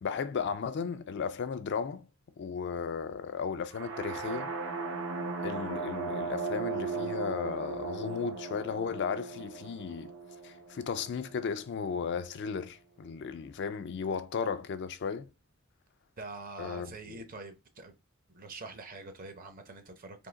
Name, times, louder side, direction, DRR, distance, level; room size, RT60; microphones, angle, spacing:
voice 1, 0.0-2.1 2.4-4.5 5.4-10.1 10.4-15.3 16.6-17.2, left 6 dB, 50° left, 0.4 m, -35 dB
sound 1, 3.7-11.6, right 4 dB, 70° right, 0.9 m, -37 dB
voice 2, 16.2-17.9 18.3-20.3, right 3 dB, 40° right, 0.7 m, -45 dB
3.7 x 2.8 x 3.9 m
head